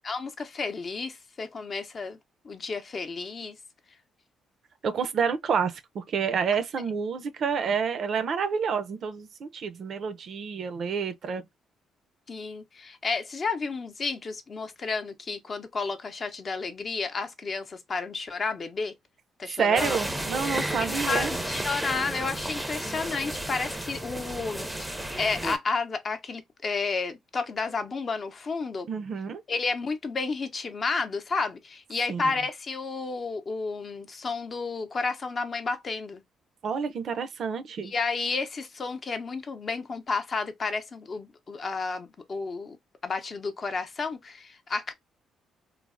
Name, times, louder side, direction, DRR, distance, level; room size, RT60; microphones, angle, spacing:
voice 1, 0.0-2.2 2.4-3.6 12.3-18.9 19.4-20.0 20.8-28.9 29.5-36.2 37.8-42.8 43.0-44.9, left 4 dB, 40° left, 0.6 m, -31 dB
voice 2, 4.8-11.4 19.6-21.3 28.9-29.4 32.1-32.2 36.6-37.9, right 6 dB, 60° right, 0.4 m, -28 dB
sound 1, 19.8-25.6, right 1 dB, 5° right, 0.5 m, -32 dB
3.2 x 2.0 x 2.4 m
cardioid pair, 90°, 0 cm